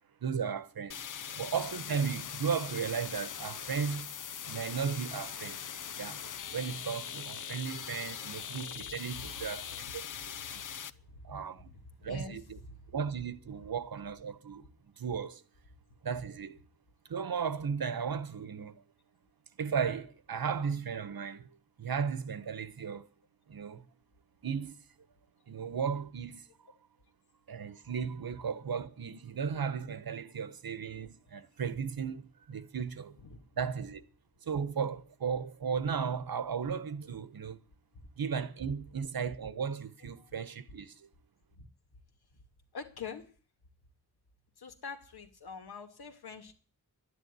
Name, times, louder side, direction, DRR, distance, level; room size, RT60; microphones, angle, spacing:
voice 1, 0.2-1.0 1.4-4.1 4.5-5.6 6.0-10.6 11.2-11.7 12.0-12.6 12.9-14.6 15.0-15.4 16.0-16.6 17.1-18.7 19.6-21.5 21.8-23.1 23.5-23.8 24.4-24.8 25.5-26.4 27.5-33.2 33.6-34.0 34.5-37.6 38.2-40.9, right 6 dB, 65° right, 1.3 m, -35 dB
sound 1, 0.9-10.9, left 8 dB, 55° left, 0.7 m, -41 dB
voice 2, 11.1-12.8 22.8-22.9 33.2-33.4 34.4-34.6 37.9-38.1 40.2-40.3 41.6-41.7 42.7-43.3 44.6-46.5, left 5 dB, 75° left, 2.4 m, -46 dB
11.5 x 9.8 x 9.7 m
wide cardioid pair, 95°, 38 cm